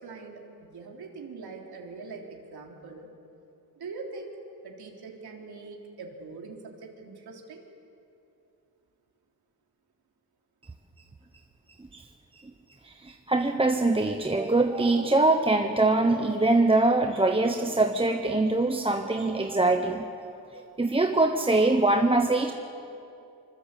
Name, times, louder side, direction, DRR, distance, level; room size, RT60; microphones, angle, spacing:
voice 1, 0.0-3.1 3.8-4.4 4.6-7.6, right 4 dB, 85° right, 0 dB, 3.5 m, -42 dB
voice 2, 12.8-20.1 20.5-22.5, right 2 dB, 15° right, 5 dB, 1.0 m, -23 dB
25.5 x 25.0 x 8.4 m, 2.7 s
wide cardioid pair, 145°, 37 cm